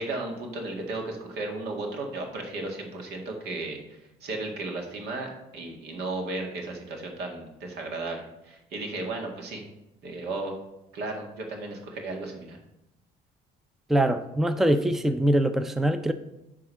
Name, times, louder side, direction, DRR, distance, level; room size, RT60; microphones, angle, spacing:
voice 1, 0.0-3.8 4.2-9.6 10.0-10.6 10.9-12.6, right 2 dB, 75° right, 2.0 m, -34 dB
voice 2, 13.9-16.1, right 1 dB, ahead, 0.4 m, -23 dB
11.0 x 3.7 x 5.6 m
cardioid pair, 110°, 17 cm